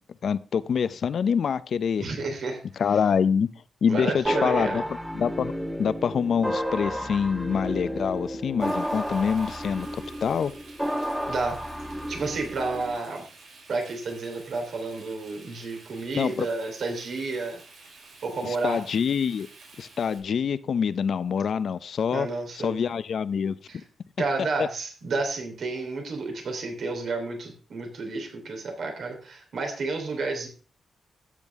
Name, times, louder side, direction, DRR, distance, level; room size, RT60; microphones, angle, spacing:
voice 1, 0.2-2.1 2.8-3.5 3.8-4.8 5.1-5.5 5.8-10.5 16.1-16.5 18.4-19.5 19.8-22.3 22.5-23.8 24.6-24.7, left 7 dB, 65° left, 0.6 m, -26 dB
voice 2, 2.0-2.6 3.9-4.8 11.3-11.6 12.1-13.2 13.7-17.6 18.2-18.8 22.1-22.7 23.7-23.8 24.2-30.5, right 3 dB, 65° right, 3.6 m, -31 dB
sound 1, 4.2-13.0, equal, 5° right, 1.5 m, -32 dB
Frying (food), 8.6-20.2, right 3 dB, 85° right, 5.3 m, -50 dB
13.5 x 9.0 x 3.6 m
cardioid pair, 105°, 0 cm